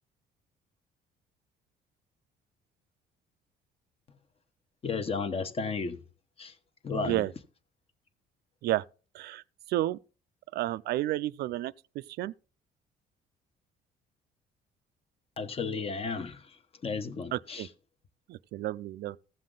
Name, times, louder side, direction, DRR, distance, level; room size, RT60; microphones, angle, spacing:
voice 1, 4.8-6.0 6.4-6.6 6.8-7.2 15.4-17.7, left 4 dB, 35° left, 1.1 m, -34 dB
voice 2, 6.9-7.3 8.6-8.8 9.1-9.4 9.7-10.0 10.5-12.3 17.3-17.7 18.3-19.2, right 15 dB, 70° right, 0.4 m, -31 dB
15.0 x 7.5 x 3.8 m
cardioid pair, 110°, 17 cm